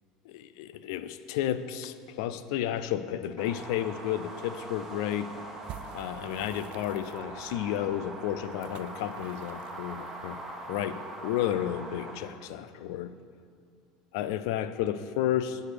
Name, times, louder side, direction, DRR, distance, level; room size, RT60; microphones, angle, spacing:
voice 1, 0.3-5.3 5.9-13.1 14.1-15.6, left 11 dB, 80° left, 13 dB, 0.4 m, -32 dB
sound 1, 3.4-12.2, right 2 dB, 10° right, 1.4 m, -42 dB
sound 2, 5.6-10.8, right 9 dB, 55° right, 0.3 m, -50 dB
9.5 x 6.4 x 5.0 m, 2.3 s
supercardioid pair, 120°, 2 cm